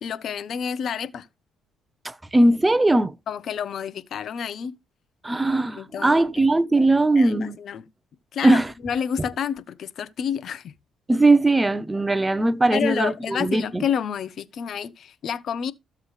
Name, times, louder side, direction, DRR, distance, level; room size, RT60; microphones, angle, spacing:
voice 1, 0.0-1.3 3.3-4.8 5.8-6.5 7.2-7.8 8.3-8.6 8.8-10.7 12.7-15.7, left 8 dB, 60° left, 1.0 m, -29 dB
voice 2, 2.0-3.1 5.2-7.6 8.4-8.7 11.1-13.8, right 2 dB, 15° right, 0.9 m, -19 dB
14.5 x 7.2 x 3.3 m
supercardioid pair, 70°, 0 cm